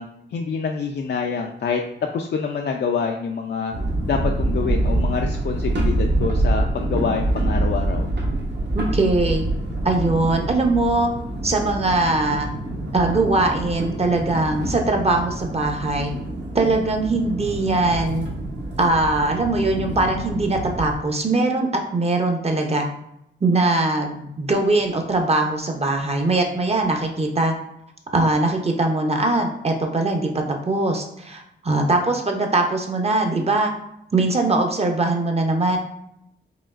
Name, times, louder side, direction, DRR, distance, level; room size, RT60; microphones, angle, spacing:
voice 1, 0.0-1.8 2.1-3.7 4.0-8.1, left 5 dB, 55° left, 3 dB, 0.4 m, -26 dB
sound 1, 3.7-20.9, right 1 dB, 55° right, 1.0 m, -26 dB
voice 2, 8.7-9.4 9.8-11.1 11.4-12.5 12.9-16.1 16.5-18.3 18.8-22.9 23.4-27.5 28.1-30.3 30.7-33.7 34.1-35.8, right 2 dB, 30° right, 2 dB, 0.6 m, -21 dB
4.9 x 2.9 x 2.4 m, 0.78 s
wide cardioid pair, 100°, 21 cm